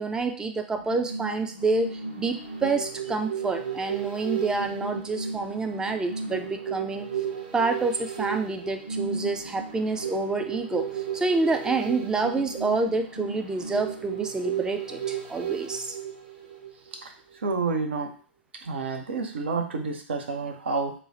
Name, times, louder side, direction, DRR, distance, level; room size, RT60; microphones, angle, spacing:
voice 1, 0.0-7.1 7.5-10.9 11.1-15.9, right 3 dB, 10° right, 6 dB, 0.3 m, -28 dB
sound 1, 0.8-17.0 17.4-17.5, right 7 dB, 60° right, 1.1 m, -34 dB
voice 2, 17.4-18.1 18.6-20.9, right 4 dB, 75° right, 4 dB, 0.5 m, -29 dB
3.0 x 2.0 x 2.6 m, 0.43 s
figure-of-eight pair, 95°, 6 cm